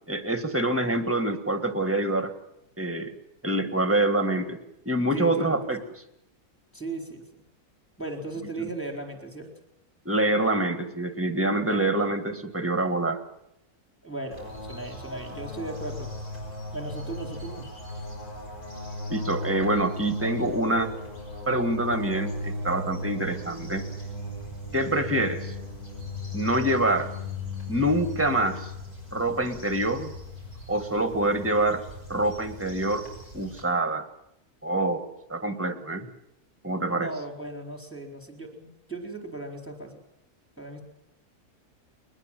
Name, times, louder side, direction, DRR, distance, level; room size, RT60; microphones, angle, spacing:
voice 1, 0.0-2.3 2.8-3.1 3.4-4.6 4.8-5.8 8.6-8.7 10.0-13.2 19.1-20.9 21.5-23.8 24.7-25.5 26.3-27.1 27.7-28.7 29.1-30.1 30.7-31.8 32.1-33.1 33.3-34.1 34.6-35.0 35.3-36.1 36.6-37.1, right 1 dB, 10° right, 8 dB, 1.5 m, -26 dB
voice 2, 5.1-5.6 6.7-7.3 8.0-9.5 11.7-11.8 14.0-16.1 16.7-17.7 36.9-40.0 40.6-40.8, right 2 dB, 10° left, 2 dB, 4.3 m, -37 dB
sound 1, 14.3-33.6, left 2 dB, 50° left, 7.5 m, -37 dB
21.5 x 20.5 x 7.6 m, 0.83 s
omnidirectional pair, 1.6 m